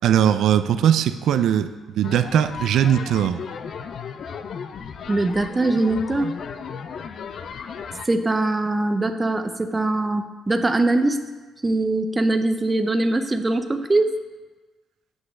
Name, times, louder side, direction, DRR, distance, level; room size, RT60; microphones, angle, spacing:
voice 1, 0.0-3.4, right 10 dB, 80° right, 11 dB, 0.3 m, -20 dB
sound 1, 2.0-8.1, left 6 dB, 60° left, 0.4 m, -35 dB
voice 2, 5.1-6.3 8.0-11.2 11.6-14.2, right 2 dB, 20° right, 8 dB, 0.5 m, -22 dB
8.0 x 3.2 x 6.2 m, 1.3 s
cardioid pair, 90°, 0 cm